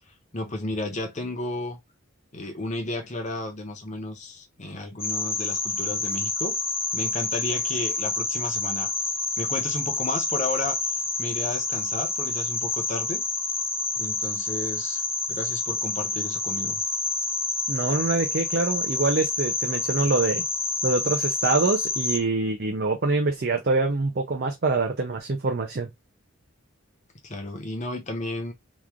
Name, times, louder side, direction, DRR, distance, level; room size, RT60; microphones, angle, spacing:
voice 1, 0.3-1.8 2.3-6.6 6.9-8.9 9.4-10.8 11.2-13.2 14.0-15.0 15.3-16.8 27.2-28.5, left 2 dB, 35° left, 0.8 m, -33 dB
sound 1, 5.0-22.2, left 3 dB, 10° left, 0.5 m, -28 dB
voice 2, 17.7-20.4 20.8-25.9, right 3 dB, 45° right, 0.5 m, -25 dB
3.1 x 2.4 x 3.6 m
head